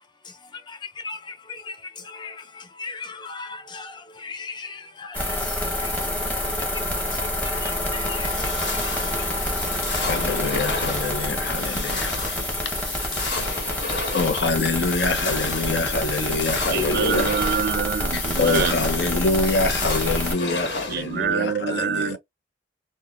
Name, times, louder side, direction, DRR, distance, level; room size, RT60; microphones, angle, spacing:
voice 1, 0.0-9.3, left 4 dB, 25° left, 0.5 m, -39 dB
sound 1, 5.1-20.3, left 1 dB, 10° left, 1.0 m, -27 dB
sound 2, 8.2-21.3, left 3 dB, 85° left, 1.3 m, -33 dB
voice 2, 10.0-12.7 13.2-17.3 18.1-22.2, left 3 dB, 65° left, 0.6 m, -26 dB
voice 3, 16.7-18.8 20.9-22.2, right 7 dB, 60° right, 0.4 m, -25 dB
3.1 x 2.2 x 2.4 m
head